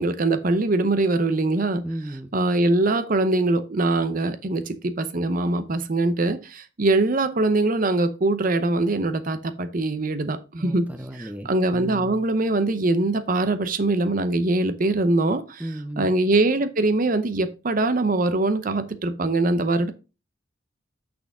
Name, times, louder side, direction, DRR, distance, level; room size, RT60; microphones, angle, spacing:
voice 1, 0.0-1.8 2.3-10.9 11.2-15.6 16.0-19.9, right 2 dB, 45° right, 0.7 m, -22 dB
voice 2, 1.8-2.3 10.6-12.2 15.6-16.1, right 1 dB, 10° right, 0.5 m, -35 dB
6.2 x 6.1 x 3.5 m
head